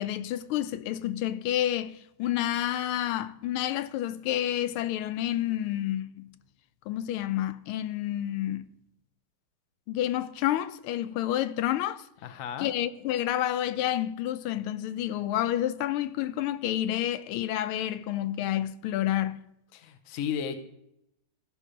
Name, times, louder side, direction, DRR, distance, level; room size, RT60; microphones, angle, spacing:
voice 1, 0.0-6.3 6.9-8.7 9.9-12.1 12.6-19.4, left 12 dB, 80° left, 1.4 m, -29 dB
voice 2, 12.2-12.7 19.7-20.6, left 8 dB, 60° left, 0.8 m, -34 dB
14.5 x 5.5 x 5.0 m
omnidirectional pair, 2.4 m